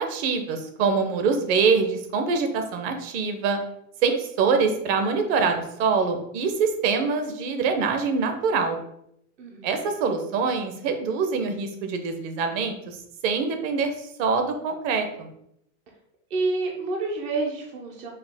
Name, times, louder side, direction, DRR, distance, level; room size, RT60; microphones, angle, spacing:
voice 1, 0.0-3.6 4.0-8.8 9.6-13.0 13.2-15.3, right 5 dB, 50° right, 6 dB, 0.8 m, -24 dB
voice 2, 9.4-9.8 16.3-18.1, right 3 dB, 20° right, 0 dB, 0.3 m, -28 dB
5.0 x 2.2 x 3.4 m, 0.75 s
supercardioid pair, 140°, 40 cm